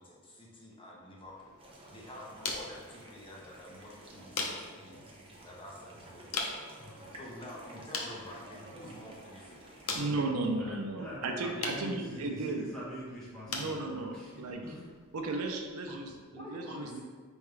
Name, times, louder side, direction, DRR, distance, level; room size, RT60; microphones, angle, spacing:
voice 1, 0.0-1.5 1.9-5.1 5.4-6.4 7.2-9.6 15.9-17.0, left 1 dB, 25° left, -4 dB, 0.7 m, -48 dB
sound 1, 1.2-16.2, left 3 dB, 75° left, 0.6 m, -43 dB
sound 2, 1.6-9.9, right 1 dB, 25° right, 0.6 m, -52 dB
voice 2, 6.8-7.2 9.9-10.2 10.5-14.8, equal, 5° left, -9 dB, 1.4 m, -45 dB
voice 3, 9.9-12.7 13.5-14.6 15.1-17.0, right 2 dB, 85° right, 3 dB, 0.5 m, -35 dB
4.6 x 3.5 x 3.2 m, 1.5 s
head